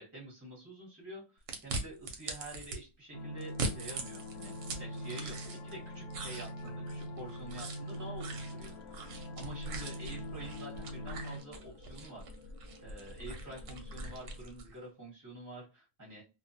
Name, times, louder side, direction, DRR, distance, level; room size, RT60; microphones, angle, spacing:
voice 1, 0.0-12.5 12.8-16.2, right 1 dB, 15° right, -3 dB, 0.6 m, -48 dB
sound 1, 1.5-2.8 3.4-5.8 6.1-14.7, right 3 dB, 70° right, 0.8 m, -42 dB
sound 2, 3.1-11.4, equal, 90° left, 1.1 m, -43 dB
sound 3, 7.9-14.4, left 5 dB, 60° left, 0.8 m, -56 dB
2.4 x 2.2 x 2.6 m, 0.28 s
omnidirectional pair, 1.6 m